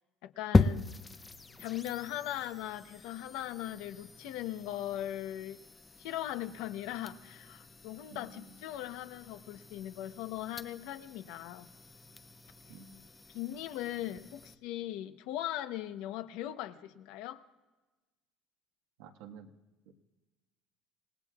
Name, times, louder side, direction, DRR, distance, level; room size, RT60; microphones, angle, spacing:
voice 1, 0.2-0.9 1.6-5.6 6.0-11.7 13.3-17.4, left 13 dB, 75° left, 10 dB, 0.9 m, -39 dB
sound 1, 0.5-14.5, left 4 dB, 15° left, 0.5 m, -37 dB
voice 2, 8.1-8.6 12.7-13.0 19.0-19.5 19.8-19.9, right 6 dB, 85° right, 2 dB, 1.6 m, -51 dB
27.5 x 18.0 x 2.4 m, 1.2 s
cardioid pair, 150°, 0 cm